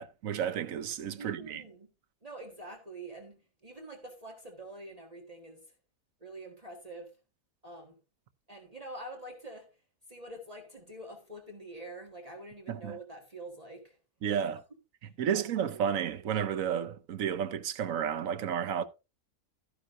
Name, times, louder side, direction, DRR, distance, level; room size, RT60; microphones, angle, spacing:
voice 1, 0.0-1.6 12.7-13.0 14.2-14.6 15.2-18.8, right 8 dB, 75° right, 1.2 m, -32 dB
voice 2, 1.2-1.9 2.2-5.6 6.2-7.1 7.6-8.0 8.5-9.7 10.1-14.0 15.0-15.4 15.7-15.9, right 1 dB, 25° right, 1.7 m, -46 dB
13.0 x 10.0 x 2.5 m
omnidirectional pair, 1.4 m